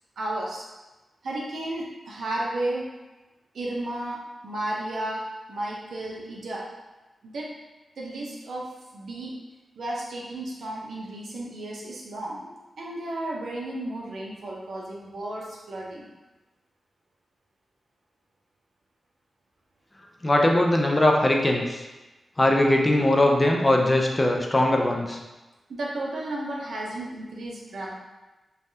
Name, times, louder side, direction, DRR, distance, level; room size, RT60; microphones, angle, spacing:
voice 1, 0.2-0.6 1.2-2.9 3.5-6.6 7.2-7.5 8.0-9.3 9.8-16.1 25.7-27.9, right 1 dB, 75° right, -3 dB, 0.6 m, -33 dB
voice 2, 20.2-21.8 22.4-25.2, left 1 dB, 20° left, 1 dB, 0.3 m, -20 dB
3.2 x 2.2 x 2.7 m, 1.1 s
wide cardioid pair, 125°, 0 cm